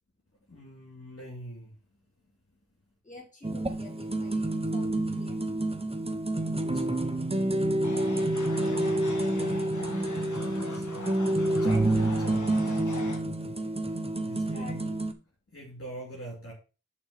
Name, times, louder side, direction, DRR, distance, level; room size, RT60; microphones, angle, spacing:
voice 1, 0.5-1.7 6.3-7.3 8.5-13.6 14.2-14.8 15.5-16.5, equal, 50° left, 2.7 m, -44 dB
voice 2, 3.0-5.4 8.7-9.0 14.5-15.0, left 2 dB, 25° left, 3.9 m, -48 dB
sound 1, 3.4-15.1, right 1 dB, 20° right, 0.9 m, -28 dB
sound 2, 7.8-13.2, left 2 dB, 85° left, 1.6 m, -42 dB
6.7 x 5.6 x 5.7 m
wide cardioid pair, 70°, 29 cm